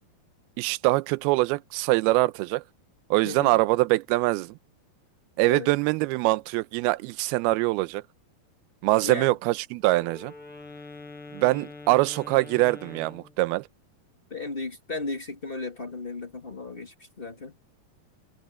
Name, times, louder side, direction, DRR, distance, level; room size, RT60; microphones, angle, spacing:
voice 1, 0.6-2.6 3.1-4.6 5.4-8.0 8.8-10.3 11.3-13.6, right 20 dB, 80° right, 2.4 m, -23 dB
voice 2, 3.2-3.6 5.5-5.7 9.0-9.3 14.3-17.5, left 3 dB, 25° left, 1.1 m, -35 dB
Wind instrument woodwind instrument, 9.8-13.4, left 3 dB, 85° left, 9.9 m, -44 dB
omnidirectional pair, 4.7 m